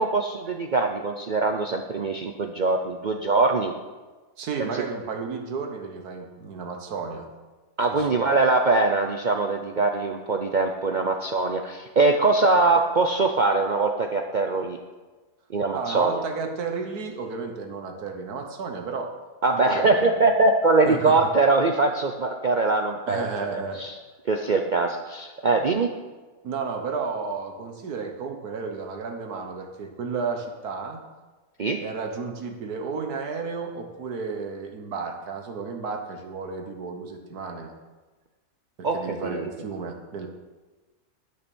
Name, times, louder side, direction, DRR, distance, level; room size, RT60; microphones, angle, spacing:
voice 1, 0.0-3.7 4.6-4.8 7.8-14.8 15.5-16.2 19.4-23.2 23.5-23.9 24.3-25.9 31.6-31.8 38.8-39.5, right 3 dB, 60° right, 4 dB, 0.5 m, -22 dB
voice 2, 4.4-7.3 7.9-8.2 15.7-19.1 19.6-20.3 20.8-21.2 23.1-23.8 26.4-31.0 31.8-37.7 38.8-40.3, right 4 dB, 75° right, 4 dB, 1.7 m, -32 dB
11.5 x 6.6 x 6.2 m, 1.3 s
omnidirectional pair, 1.6 m